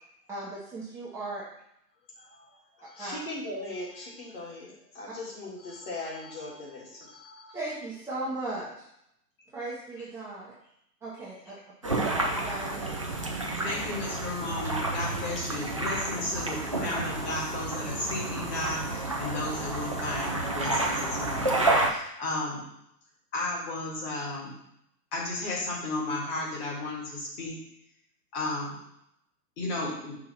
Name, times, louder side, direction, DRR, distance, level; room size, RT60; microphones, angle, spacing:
voice 1, 0.3-1.4 3.0-3.2 7.5-8.8 9.5-10.5 11.0-11.5 11.8-12.9, right 2 dB, 5° right, -10 dB, 0.9 m, -37 dB
voice 2, 2.2-7.6, left 2 dB, 40° left, -5 dB, 2.6 m, -40 dB
sound 1, 11.8-21.9, right 2 dB, 25° right, 0.4 m, -30 dB
voice 3, 13.6-22.6 23.3-24.6 25.1-27.6 28.3-28.8 29.6-30.2, left 2 dB, 25° left, -3 dB, 1.9 m, -34 dB
5.7 x 3.7 x 5.8 m, 0.77 s
figure-of-eight pair, 125°, 48 cm